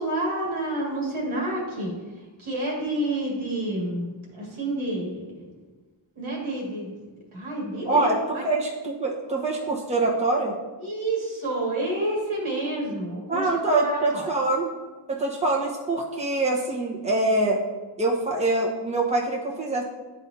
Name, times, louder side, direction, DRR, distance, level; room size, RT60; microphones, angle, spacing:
voice 1, 0.0-1.9 2.4-5.5 6.2-8.4 10.8-14.3, right 1 dB, 80° right, -4 dB, 2.0 m, -29 dB
voice 2, 7.8-10.5 13.3-14.7 15.1-17.6 18.0-19.8, right 2 dB, 15° right, -2 dB, 1.0 m, -24 dB
9.8 x 4.1 x 2.7 m, 1.3 s
cardioid pair, 55°, 48 cm